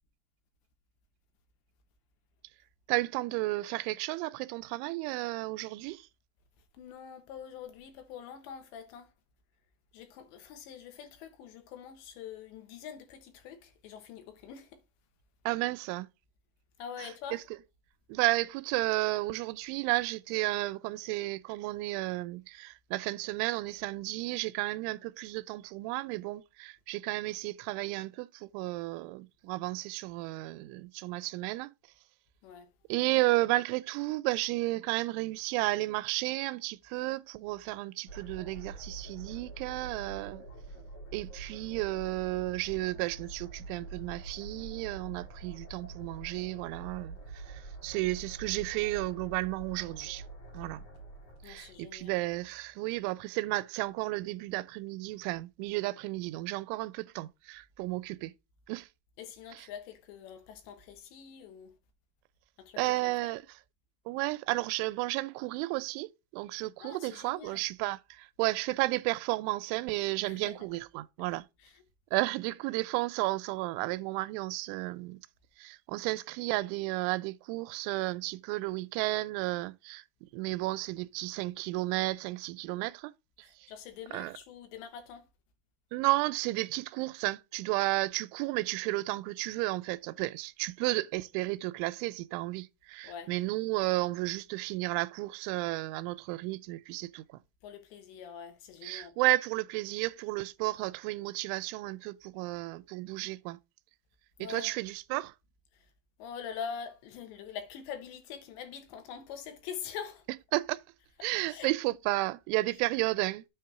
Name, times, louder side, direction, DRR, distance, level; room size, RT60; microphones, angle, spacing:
voice 1, 2.9-6.1 15.5-16.1 17.3-17.4 18.1-31.7 32.9-40.4 41.1-50.2 50.5-50.8 51.5-58.3 58.7-58.9 59.5-59.7 62.8-63.4 64.1-71.4 72.1-75.2 75.6-83.1 83.6-83.7 84.1-84.4 85.9-97.2 98.8-103.6 104.4-105.3 110.5-110.8 111.2-113.5, right 20 dB, 90° right, 3.0 m, -33 dB
voice 2, 6.8-9.1 9.9-14.8 16.8-17.4 32.4-32.7 51.4-52.2 59.2-61.7 62.6-63.3 66.8-67.6 70.3-70.5 71.6-71.8 83.4-85.2 93.0-93.3 97.6-99.2 104.4-104.7 106.2-110.2 111.5-111.7, left 7 dB, 75° left, 3.4 m, -44 dB
sound 1, 38.1-52.3, right 3 dB, 45° left, 2.3 m, -46 dB
9.1 x 3.7 x 5.6 m
omnidirectional pair, 5.3 m